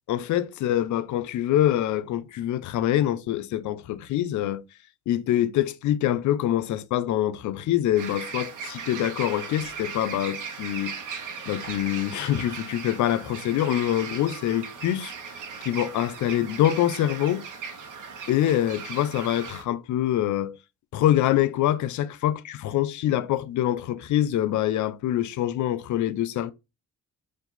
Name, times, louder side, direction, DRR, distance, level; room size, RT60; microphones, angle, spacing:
voice 1, 0.1-4.6 5.1-11.0 11.5-15.1 15.6-17.5 18.3-20.6 20.9-26.5, left 12 dB, 70° left, 0.5 m, -25 dB
sound 1, 8.0-19.6, right 6 dB, 80° right, 0.9 m, -38 dB
4.6 x 2.5 x 3.9 m
cardioid pair, 90°, 30 cm